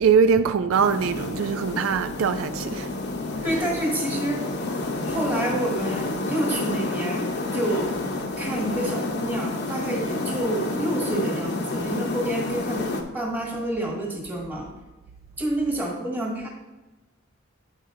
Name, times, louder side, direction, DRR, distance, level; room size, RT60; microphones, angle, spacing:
voice 1, 0.0-2.9, right 6 dB, 75° right, 0.3 m, -22 dB
sound 1, 0.7-13.0, left 2 dB, 50° left, 0.8 m, -29 dB
voice 2, 3.4-4.5 5.0-7.3 7.5-8.0 8.4-14.7 15.4-16.5, right 1 dB, 10° right, 1.4 m, -28 dB
8.2 x 5.5 x 3.7 m
head